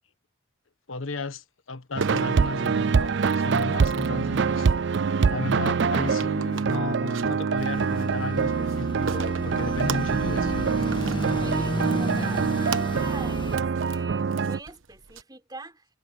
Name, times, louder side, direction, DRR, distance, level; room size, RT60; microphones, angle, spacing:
voice 1, 0.9-4.7 5.3-10.8, left 3 dB, 75° left, 1.4 m, -34 dB
sound 1, 2.0-14.6, right 5 dB, 60° right, 0.4 m, -25 dB
sound 2, 2.0-15.2, right 5 dB, 75° right, 1.2 m, -40 dB
sound 3, 7.6-13.6, left 1 dB, 25° left, 1.6 m, -33 dB
voice 2, 11.4-15.9, right 2 dB, 20° right, 4.9 m, -43 dB
head